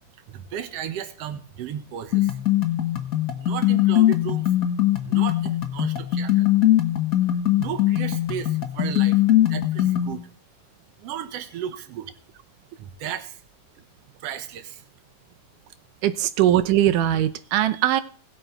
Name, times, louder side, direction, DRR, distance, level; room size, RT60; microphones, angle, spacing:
voice 1, 0.3-2.4 3.4-4.6 5.0-6.6 7.6-10.3 11.0-12.1 12.8-13.4 14.2-14.9, right 9 dB, 60° right, 1.9 m, -34 dB
sound 1, 2.1-10.1, left 13 dB, 70° left, 0.8 m, -21 dB
voice 2, 16.0-18.0, right 12 dB, 80° right, 2.3 m, -20 dB
20.0 x 7.1 x 4.6 m
omnidirectional pair, 3.7 m